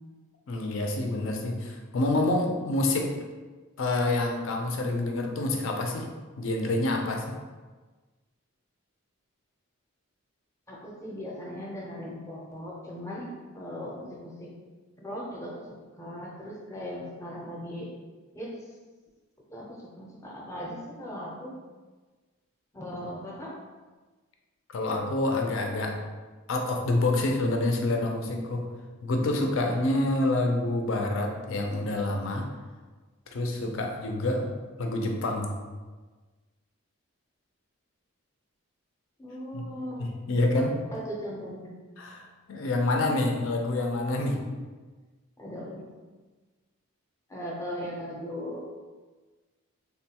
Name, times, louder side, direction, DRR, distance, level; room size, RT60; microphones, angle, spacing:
voice 1, 0.5-3.1 3.8-6.1 6.4-7.2 24.7-26.0 26.5-28.7 29.0-32.5 33.3-34.5 34.8-35.6 39.5-39.6 40.0-40.7 42.0-44.4, left 2 dB, 65° left, 2 dB, 0.4 m, -27 dB
voice 2, 10.7-14.5 15.0-17.9 18.3-18.5 19.5-21.5 22.7-23.5 39.2-40.1 40.6-40.7 40.9-41.7 45.4-45.8 47.3-48.6, equal, 15° left, -4 dB, 0.5 m, -38 dB
3.6 x 2.2 x 2.8 m, 1.3 s
head